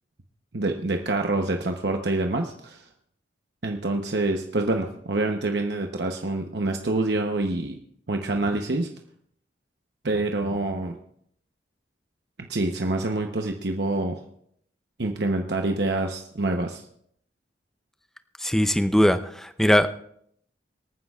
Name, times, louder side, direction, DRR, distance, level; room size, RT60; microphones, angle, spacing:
voice 1, 0.5-2.9 3.6-7.8 8.1-8.9 10.0-10.9 12.4-14.2 15.0-16.8, right 2 dB, 70° right, 3 dB, 0.9 m, -26 dB
voice 2, 18.4-19.9, equal, 5° left, 9 dB, 0.5 m, -20 dB
25.0 x 9.6 x 2.4 m, 0.68 s
head